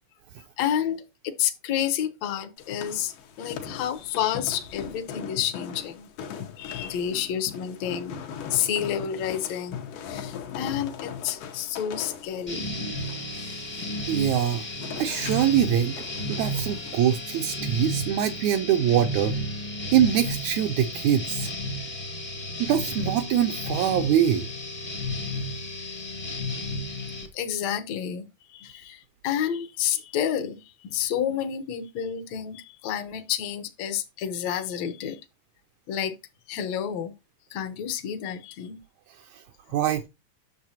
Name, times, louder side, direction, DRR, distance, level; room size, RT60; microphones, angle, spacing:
voice 1, 0.6-6.1 6.6-8.2 8.5-12.8 26.9-27.0 27.3-35.2 35.9-36.1 36.5-37.1 37.5-38.8, left 9 dB, 65° left, 1.9 m, -30 dB
sound 1, 2.6-17.3, left 7 dB, 85° left, 2.7 m, -40 dB
sound 2, 12.5-27.3, left 1 dB, 35° left, 0.7 m, -33 dB
voice 2, 14.1-14.6 15.0-19.4 19.9-21.5 22.6-24.5 39.7-40.1, right 10 dB, 80° right, 1.7 m, -23 dB
9.0 x 6.6 x 2.7 m
omnidirectional pair, 3.7 m